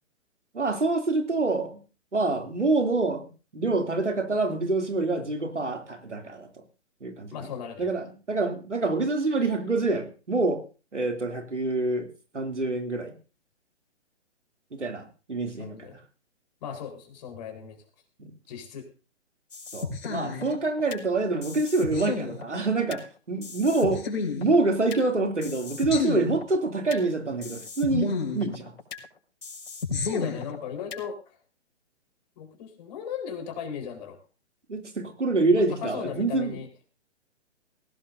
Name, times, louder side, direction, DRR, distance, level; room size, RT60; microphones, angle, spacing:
voice 1, 0.5-1.8 2.1-6.5 7.0-7.5 7.8-10.6 10.9-12.1 12.3-13.1 14.8-15.8 18.2-18.3 19.7-24.1 24.4-28.7 34.7-36.6, right 3 dB, 80° right, 4 dB, 2.9 m, -26 dB
voice 2, 7.3-7.9 15.5-16.0 16.6-17.8 18.5-18.9 30.0-31.4 32.4-34.2 35.5-36.7, left 7 dB, 35° left, 3 dB, 4.3 m, -37 dB
sound 1, 19.5-21.0 21.4-23.0 23.4-25.0 25.4-27.0 27.4-29.0 29.4-31.0, left 5 dB, 55° left, 5.5 m, -32 dB
20.0 x 17.0 x 2.7 m, 0.35 s
figure-of-eight pair, 125°, 35 cm